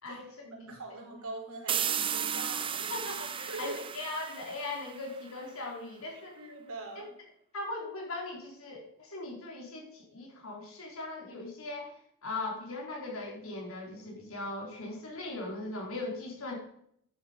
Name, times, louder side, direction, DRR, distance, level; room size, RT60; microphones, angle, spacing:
voice 1, 0.1-2.8 3.5-3.8 6.4-7.1, right 2 dB, 85° right, 0 dB, 4.3 m, -43 dB
sound 1, 1.7-5.3, right 8 dB, 25° right, 0.6 m, -34 dB
voice 2, 2.9-6.4 7.5-11.9 12.2-16.6, left 2 dB, 75° left, -1 dB, 4.2 m, -39 dB
13.0 x 9.9 x 5.2 m, 0.71 s
head